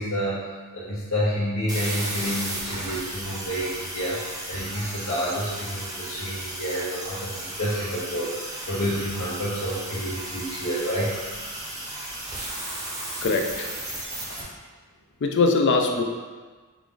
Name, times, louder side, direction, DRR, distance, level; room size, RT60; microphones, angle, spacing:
voice 1, 0.0-11.2, equal, 75° left, -11 dB, 0.9 m, -29 dB
sound 1, 1.7-14.4, right 1 dB, 15° right, 0.6 m, -34 dB
voice 2, 13.2-13.7 14.3-14.5 15.2-16.0, left 3 dB, 55° left, 4 dB, 0.4 m, -22 dB
4.6 x 2.5 x 3.7 m, 1.4 s
head